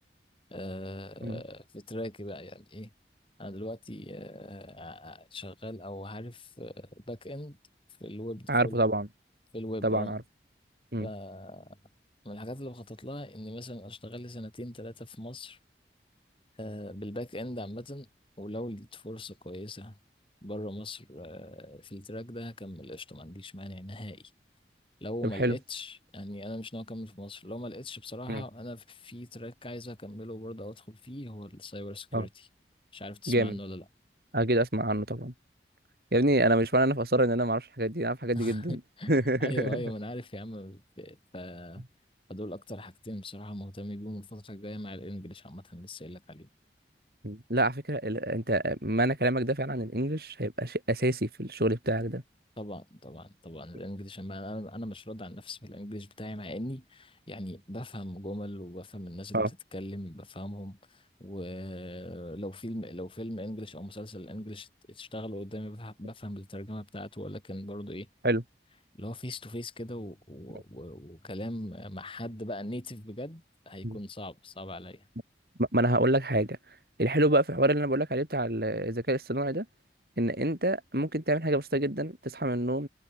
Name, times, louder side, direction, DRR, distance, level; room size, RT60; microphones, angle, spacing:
voice 1, 0.5-2.9 3.4-7.6 8.0-8.8 9.5-10.2 11.0-11.8 12.2-15.6 16.6-18.1 18.4-20.0 20.4-24.3 25.0-32.5 32.9-33.8 38.4-41.8 42.3-46.5 52.6-68.1 69.0-75.0, left 1 dB, 30° left, 5.4 m, -40 dB
voice 2, 8.5-9.1 9.8-10.2 10.9-11.1 25.4-25.6 28.3-28.4 32.1-32.3 33.3-33.6 34.3-35.3 36.1-38.8 39.1-39.8 47.2-52.2 59.3-59.5 68.2-68.4 73.8-74.0 75.6-76.6 77.0-79.6 80.2-82.9, right 1 dB, 60° right, 4.9 m, -27 dB
head